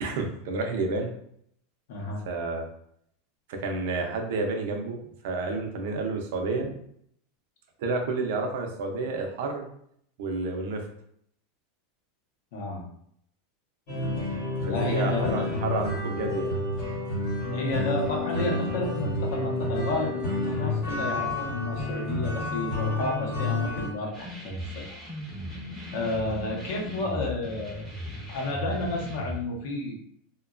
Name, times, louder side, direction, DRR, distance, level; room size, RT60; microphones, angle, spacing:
voice 1, 0.0-1.1 2.3-2.7 3.5-5.0 5.2-6.7 7.8-9.7 10.2-10.8 14.7-16.6 26.8-26.9, right 3 dB, 60° right, 3 dB, 0.5 m, -30 dB
voice 2, 1.9-2.2 6.6-6.7 12.5-12.9 14.7-15.5 17.5-24.9 25.5-25.6 25.9-27.8 28.3-29.9, left 2 dB, 60° left, 0 dB, 0.7 m, -31 dB
sound 1, 13.9-23.9, left 2 dB, 45° left, 1.0 m, -29 dB
sound 2, 24.1-29.4, equal, 5° right, 0.5 m, -37 dB
2.8 x 2.2 x 2.4 m, 0.69 s
supercardioid pair, 180°, 0 cm